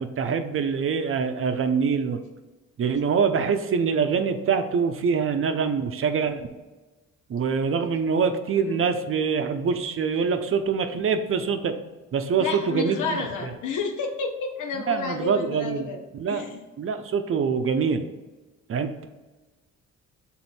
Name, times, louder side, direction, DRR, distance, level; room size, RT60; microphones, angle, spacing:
voice 1, 0.0-2.2 2.8-6.5 7.3-11.7 12.1-13.2 14.9-15.9 16.1-16.4 16.8-18.0 18.7-19.0, right 6 dB, 45° right, 7 dB, 0.6 m, -24 dB
voice 2, 8.5-8.8 12.4-16.0 16.3-16.6, left 4 dB, 80° left, 3 dB, 0.8 m, -31 dB
6.1 x 3.8 x 4.3 m, 1.2 s
cardioid pair, 90°, 30 cm